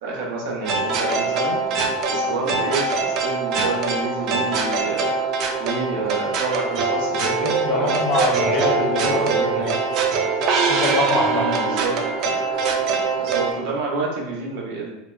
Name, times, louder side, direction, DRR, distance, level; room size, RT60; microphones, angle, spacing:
voice 1, 0.0-1.6 2.1-2.9 3.2-5.1 5.6-8.0 8.5-9.7 11.3-12.0 13.2-14.9, right 3 dB, 70° right, -3 dB, 0.7 m, -29 dB
sound 1, 0.7-13.5, right 4 dB, 55° right, 0.3 m, -23 dB
voice 2, 7.4-9.6 10.6-11.5, left 3 dB, 45° left, 0 dB, 0.6 m, -24 dB
2.7 x 2.1 x 2.3 m, 0.95 s
hypercardioid pair, 90°, 0 cm